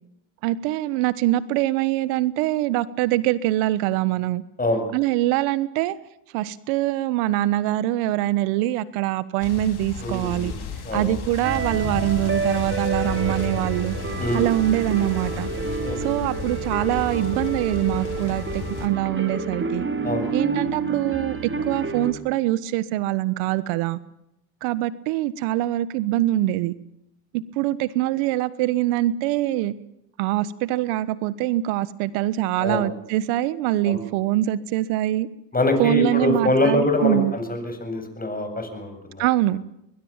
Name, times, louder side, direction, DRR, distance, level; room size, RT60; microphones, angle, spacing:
voice 1, 0.4-4.4 4.9-6.0 6.3-10.5 10.9-13.9 14.3-15.5 16.0-19.9 20.3-21.4 21.7-24.0 24.6-26.7 27.3-29.7 30.2-35.3 35.8-37.3 39.2-39.6, right 15 dB, 90° right, 16 dB, 1.4 m, -23 dB
sound 1, 9.4-18.9, left 5 dB, 50° left, 5.2 m, -34 dB
voice 2, 10.0-10.5 10.8-11.1 14.2-14.5 15.8-16.0 20.0-20.3 32.6-32.9 33.8-34.0 35.5-39.2, left 1 dB, 20° left, 6 dB, 7.8 m, -24 dB
sound 2, 11.4-22.1, right 4 dB, 25° right, 3.6 m, -29 dB
23.0 x 21.5 x 7.4 m, 0.82 s
supercardioid pair, 85°, 49 cm